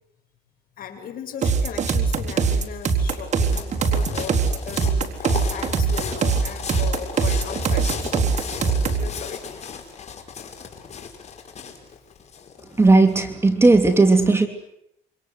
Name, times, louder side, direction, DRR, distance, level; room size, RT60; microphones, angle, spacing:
voice 1, 0.8-8.5 8.9-9.4, left 7 dB, 55° left, 4 dB, 7.6 m, -37 dB
sound 1, 1.4-9.1, right 5 dB, 45° right, 3.9 m, -22 dB
sound 2, 2.3-13.1, left 6 dB, 40° left, 5.3 m, -36 dB
voice 2, 12.8-14.5, right 3 dB, 15° right, 7 dB, 3.2 m, -15 dB
28.0 x 26.0 x 8.1 m, 0.75 s
cardioid pair, 110°, 17 cm